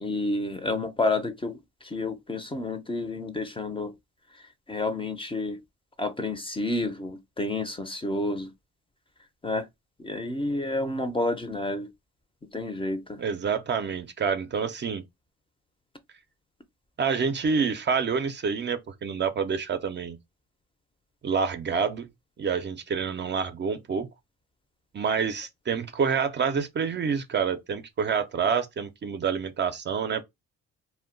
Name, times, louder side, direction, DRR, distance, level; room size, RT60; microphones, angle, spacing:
voice 1, 0.0-3.9 4.7-5.6 6.0-8.5 9.4-9.7 10.0-11.9 12.5-13.2, left 2 dB, 20° left, 0.5 m, -30 dB
voice 2, 13.2-15.0 17.0-20.2 21.2-22.1 22.4-24.1 24.9-30.2, right 6 dB, 35° right, 0.4 m, -27 dB
2.2 x 2.1 x 3.7 m
cardioid pair, 90°, 30 cm